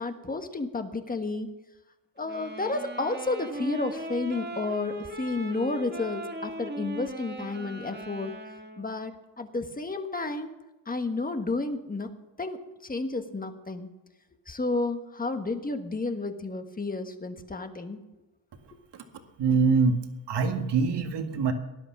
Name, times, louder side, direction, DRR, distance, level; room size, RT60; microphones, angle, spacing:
voice 1, 0.0-1.5 2.2-8.3 8.8-10.5 10.8-12.1 12.4-13.9 14.5-18.0, left 3 dB, 20° left, 7 dB, 1.4 m, -31 dB
sound 1, 2.2-9.0, right 2 dB, 20° right, 1.5 m, -39 dB
voice 2, 19.4-21.5, right 5 dB, 55° right, 5 dB, 2.0 m, -24 dB
18.5 x 11.0 x 6.0 m, 1.0 s
cardioid pair, 135°, 48 cm